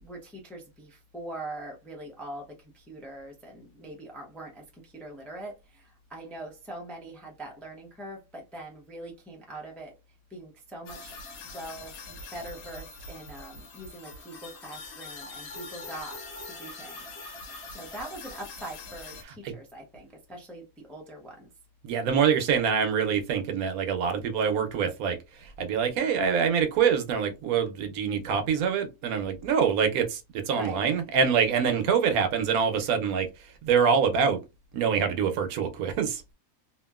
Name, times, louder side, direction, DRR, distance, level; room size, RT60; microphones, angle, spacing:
voice 1, 0.0-9.9 10.3-11.2 11.5-17.1 17.7-21.5 30.5-30.9, right 1 dB, ahead, 0.3 m, -42 dB
sound 1, 10.9-19.2, left 3 dB, 75° left, 1.1 m, -43 dB
voice 2, 21.8-30.2 30.5-33.3 33.6-34.4 34.7-36.2, right 6 dB, 80° right, 1.1 m, -25 dB
2.8 x 2.5 x 2.2 m
omnidirectional pair, 1.5 m